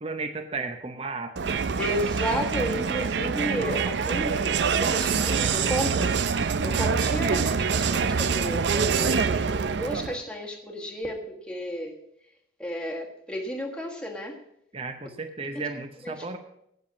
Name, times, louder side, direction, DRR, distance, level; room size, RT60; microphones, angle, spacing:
voice 1, 0.0-1.5 14.7-16.4, right 3 dB, 30° right, 7 dB, 0.7 m, -34 dB
Crowd, 1.4-10.2, right 5 dB, 60° right, 0.5 m, -25 dB
voice 2, 1.8-9.2 9.8-12.0 12.6-14.4 16.0-16.1, equal, 5° left, 0 dB, 1.3 m, -32 dB
8.7 x 7.9 x 8.1 m, 0.75 s
head